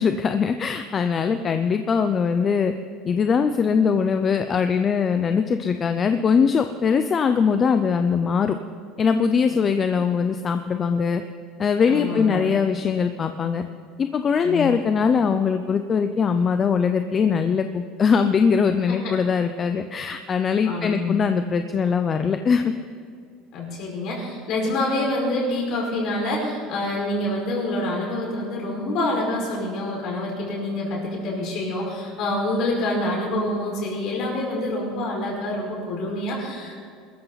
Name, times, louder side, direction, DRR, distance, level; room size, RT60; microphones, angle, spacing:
voice 1, 0.0-2.7 3.0-8.6 9.0-11.2 11.6-13.6 14.0-22.7, left 6 dB, 25° left, 8 dB, 0.5 m, -21 dB
voice 2, 11.9-12.4 14.4-14.7 18.9-19.0 20.6-21.2 23.5-36.8, left 1 dB, 45° left, -2 dB, 5.2 m, -26 dB
22.0 x 13.5 x 4.1 m, 2.3 s
cardioid pair, 165°, 0 cm